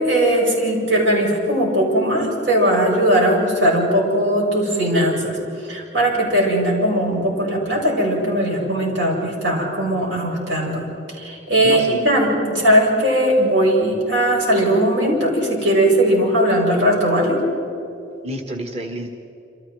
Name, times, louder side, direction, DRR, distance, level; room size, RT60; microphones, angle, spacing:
voice 1, 0.0-5.4 5.6-10.8 11.1-17.4, right 1 dB, 90° right, -2 dB, 7.7 m, -19 dB
voice 2, 11.6-12.0 18.2-19.1, right 1 dB, 35° right, 2 dB, 1.4 m, -29 dB
28.5 x 27.0 x 4.7 m, 2.8 s
head